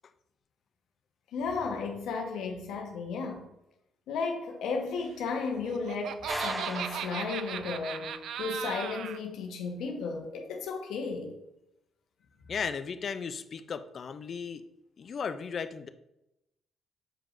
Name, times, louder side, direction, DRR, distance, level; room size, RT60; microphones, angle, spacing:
voice 1, 1.3-3.4 4.1-11.4, left 4 dB, 85° left, 1.2 m, -34 dB
Laughter, 5.4-9.2, right 9 dB, 75° right, 0.3 m, -37 dB
sound 1, 6.3-8.2, right 1 dB, 15° right, 0.7 m, -38 dB
voice 2, 12.5-14.6 15.0-15.9, left 6 dB, 50° left, 0.5 m, -35 dB
7.4 x 5.0 x 2.6 m
cardioid pair, 90°, 0 cm